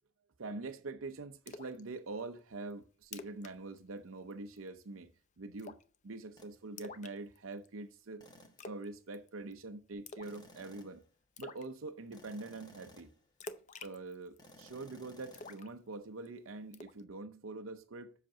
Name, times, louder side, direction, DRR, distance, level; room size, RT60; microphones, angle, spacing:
voice 1, 0.4-5.1 5.4-5.8 6.0-8.3 8.6-11.0 11.4-13.1 13.8-18.1, right 3 dB, 80° right, 0.7 m, -44 dB
Splash splatter, 1.5-1.8 2.2-2.3 2.7-2.8 3.0-3.5 3.8-4.0 4.3-4.7 5.6-6.0 6.8-7.7 8.6-8.9 9.1-9.5 10.1-10.4 10.7-10.8 11.4-11.7 13.4-14.7 15.3-16.3 16.7-17.0, left 4 dB, 35° left, 0.6 m, -48 dB
sound 1, 6.4-6.6 8.2-8.7 10.2-11.1 12.1-13.2 14.4-15.6, left 1 dB, 20° left, 1.3 m, -57 dB
7.7 x 5.8 x 5.5 m
head